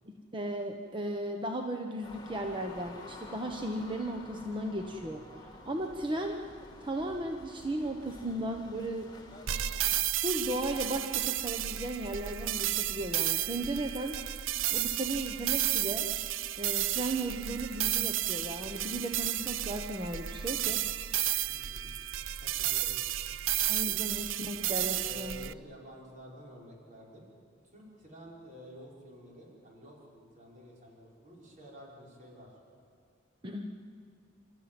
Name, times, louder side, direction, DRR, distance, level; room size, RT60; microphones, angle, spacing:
voice 1, 0.1-6.4 6.8-9.1 9.9-14.2 14.7-16.1 16.6-20.8 23.7-25.4 33.4-33.7, right 1 dB, 25° right, 3 dB, 1.1 m, -36 dB
sound 1, 2.0-9.8, left 2 dB, 20° left, 2.4 m, -50 dB
sound 2, 9.5-25.5, right 13 dB, 75° right, 0.5 m, -32 dB
voice 2, 21.5-21.9 22.4-23.0 23.4-23.5 23.9-24.1 24.6-27.2 27.6-32.5, equal, 40° right, -4 dB, 5.5 m, -50 dB
30.0 x 14.0 x 9.0 m, 2.3 s
head